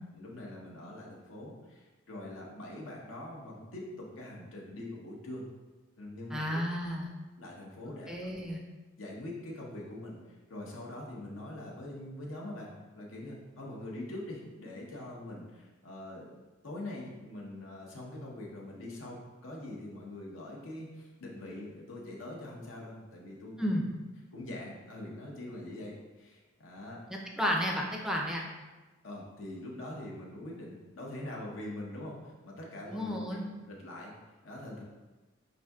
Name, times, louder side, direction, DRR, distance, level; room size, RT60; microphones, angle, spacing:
voice 1, 0.1-5.5 6.0-6.4 7.4-8.3 9.0-16.3 16.6-23.9 24.3-27.0 29.0-33.4 33.7-34.1 34.4-34.8, left 1 dB, 75° left, -3 dB, 0.8 m, -43 dB
voice 2, 6.3-7.1 8.1-8.6 23.6-23.8 27.4-28.4 32.9-33.4, equal, 5° right, -1 dB, 0.4 m, -32 dB
5.8 x 2.6 x 2.3 m, 1.2 s
head